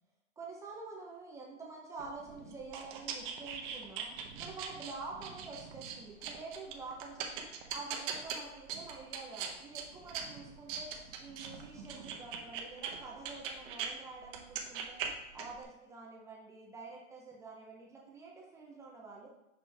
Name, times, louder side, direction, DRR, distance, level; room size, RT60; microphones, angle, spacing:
voice 1, 0.4-15.0 15.3-19.3, right 3 dB, 10° right, -2 dB, 0.5 m, -48 dB
sound 1, 2.0-13.9 14.2-15.6, right 7 dB, 40° right, 0.9 m, -42 dB
6.5 x 5.1 x 3.2 m, 0.90 s
hypercardioid pair, 150°, 38 cm